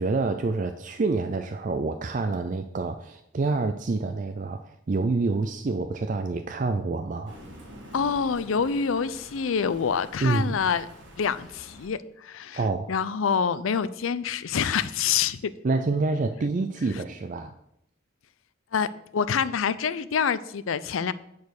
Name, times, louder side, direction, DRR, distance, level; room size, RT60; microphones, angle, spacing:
voice 1, 0.0-7.4 10.2-10.6 12.5-12.9 15.6-17.5, right 3 dB, 40° right, 7 dB, 0.4 m, -27 dB
Thunder, 7.2-11.9, equal, 60° right, 1.9 m, -47 dB
voice 2, 7.9-10.9 11.2-12.6 12.9-15.5 18.7-21.1, left 6 dB, 85° left, 16 dB, 0.5 m, -26 dB
9.5 x 4.2 x 6.5 m, 0.78 s
head